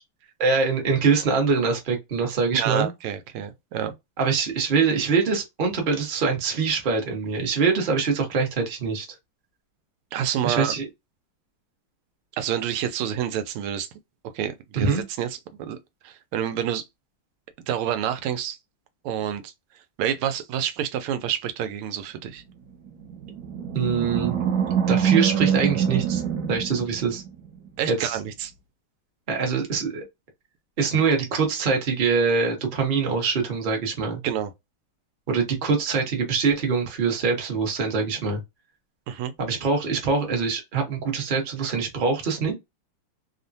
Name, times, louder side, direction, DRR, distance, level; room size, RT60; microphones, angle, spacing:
voice 1, 0.4-2.9 4.2-9.1 10.4-10.9 14.8-15.0 23.7-24.3 24.9-26.2 26.5-27.2 27.9-28.2 29.3-30.0 30.8-34.2 35.3-38.4 39.4-42.5, right 5 dB, 45° right, 0.7 m, -24 dB
voice 2, 2.5-3.9 10.1-10.7 12.4-13.9 14.3-15.8 16.0-16.8 17.7-18.6 19.0-19.5 20.0-22.4 27.8-28.5 34.2-34.5 39.1-39.3, right 9 dB, 90° right, 1.5 m, -28 dB
Animal, 22.9-27.5, right 8 dB, 65° right, 1.1 m, -24 dB
3.5 x 2.1 x 2.6 m
omnidirectional pair, 2.4 m